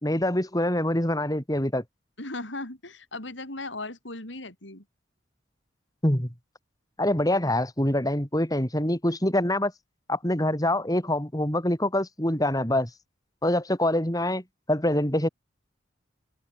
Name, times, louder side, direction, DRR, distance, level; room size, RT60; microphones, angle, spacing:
voice 1, 0.0-1.8 6.0-6.3 7.0-9.7 10.1-12.9 13.4-14.4 14.7-15.3, left 1 dB, 20° left, 4.1 m, -25 dB
voice 2, 2.2-4.8, left 2 dB, 70° left, 6.6 m, -37 dB
head